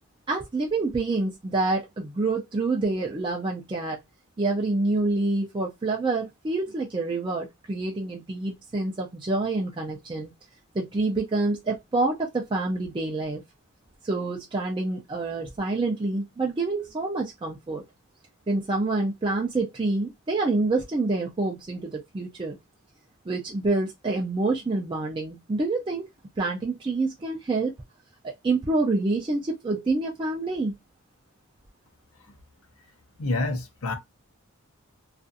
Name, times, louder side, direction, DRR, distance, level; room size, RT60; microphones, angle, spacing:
voice 1, 0.3-4.0 4.4-10.3 10.7-13.4 14.0-17.8 18.5-22.6 23.3-26.1 26.4-27.7 28.2-30.7, right 3 dB, 20° right, 0.4 m, -27 dB
voice 2, 33.2-33.9, left 2 dB, 75° left, 0.7 m, -27 dB
2.4 x 2.4 x 2.5 m
head